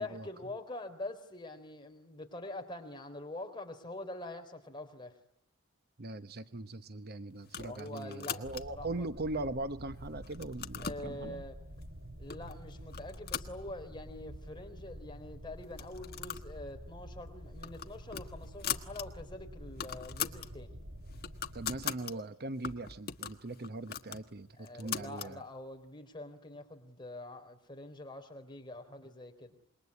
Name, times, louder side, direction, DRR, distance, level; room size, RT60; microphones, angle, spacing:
voice 1, 0.0-5.1 7.7-9.1 10.8-11.6 12.2-20.8 24.6-29.6, left 2 dB, 20° left, 5 dB, 3.9 m, -45 dB
voice 2, 6.0-11.4 21.5-25.4, right 2 dB, 50° right, 11 dB, 1.0 m, -40 dB
sound 1, 7.4-8.9 9.4-9.9 10.2-11.1 11.8-11.9 12.3-12.6 12.9-14.1 14.5-14.6 14.8-14.9 15.6-16.5 16.8-17.0 17.4-19.1 19.4-19.5 19.7-20.5 20.9-22.1 22.6-25.3, left 8 dB, 50° left, 1.5 m, -40 dB
sound 2, 8.4-21.9, equal, 65° right, 3.4 m, -48 dB
27.0 x 22.0 x 9.8 m, 0.75 s
head